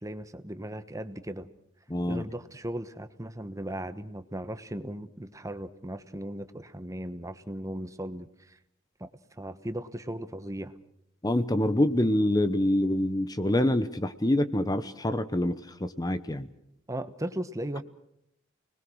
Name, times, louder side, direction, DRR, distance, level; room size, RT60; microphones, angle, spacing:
voice 1, 0.0-1.5 2.1-8.6 9.0-10.7 16.9-17.8, right 1 dB, 15° right, 11 dB, 1.1 m, -37 dB
voice 2, 1.9-2.2 11.2-16.5, left 1 dB, 20° left, 12 dB, 0.9 m, -26 dB
30.0 x 20.5 x 6.3 m, 0.75 s
head